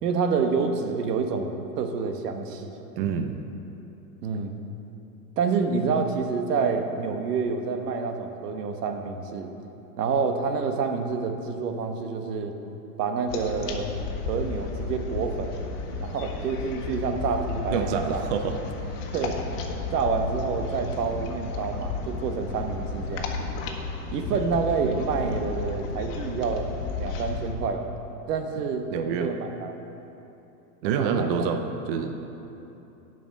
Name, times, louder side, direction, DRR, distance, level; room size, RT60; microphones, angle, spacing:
voice 1, 0.0-2.7 4.2-4.5 5.4-9.5 10.0-12.5 13.0-13.9 14.3-15.5 16.0-18.2 19.1-19.4 19.9-23.3 24.1-27.9 28.3-29.7 30.8-31.3, right 5 dB, 70° right, 5 dB, 1.2 m, -28 dB
voice 2, 3.0-3.4 17.7-18.6 24.3-24.4 28.9-29.3 30.8-32.4, right 6 dB, 35° right, 6 dB, 0.5 m, -27 dB
sound 1, 13.3-27.5, left 4 dB, 50° left, 1.3 m, -33 dB
11.0 x 5.3 x 7.2 m, 3.0 s
supercardioid pair, 150°, 49 cm